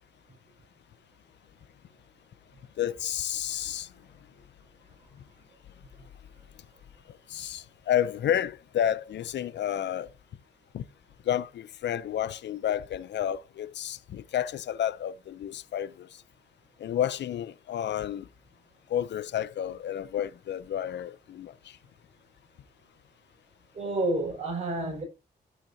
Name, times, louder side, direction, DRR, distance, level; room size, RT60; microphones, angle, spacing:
voice 1, 2.8-3.9 7.3-10.1 10.7-10.8 11.3-16.1 16.8-18.3 18.9-21.8, left 10 dB, 75° left, 0.5 m, -30 dB
voice 2, 23.7-25.0, right 2 dB, 40° right, 5.9 m, -29 dB
16.0 x 5.9 x 2.7 m
wide cardioid pair, 135°, 18 cm